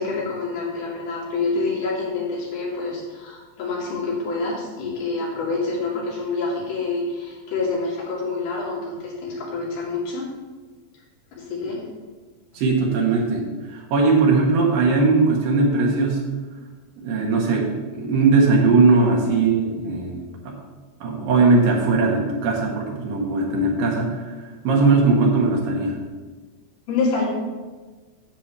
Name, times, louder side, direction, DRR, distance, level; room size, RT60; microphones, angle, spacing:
voice 1, 0.0-10.3 11.3-11.8 19.0-19.3 26.9-27.3, left 3 dB, 80° left, -6 dB, 4.3 m, -27 dB
voice 2, 12.5-13.5 13.7-16.2 17.0-20.6 21.0-24.3 24.6-26.0, right 3 dB, 70° right, -1 dB, 3.0 m, -19 dB
10.0 x 8.1 x 3.4 m, 1.3 s
omnidirectional pair, 4.2 m